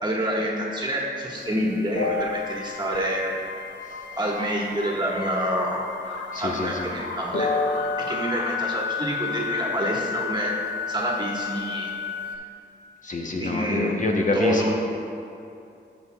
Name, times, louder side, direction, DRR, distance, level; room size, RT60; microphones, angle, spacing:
voice 1, 0.0-3.3 4.1-5.8 6.3-7.5 8.0-10.5 10.9-11.9 12.2-12.3 13.4-14.7, right 1 dB, 25° right, -3 dB, 1.4 m, -27 dB
sound 1, 1.4-12.4, left 5 dB, 85° left, 0.5 m, -31 dB
voice 2, 6.3-6.9 13.0-14.7, left 2 dB, 45° left, 0 dB, 0.8 m, -26 dB
14.0 x 5.4 x 2.3 m, 2.6 s
cardioid pair, 70°, 18 cm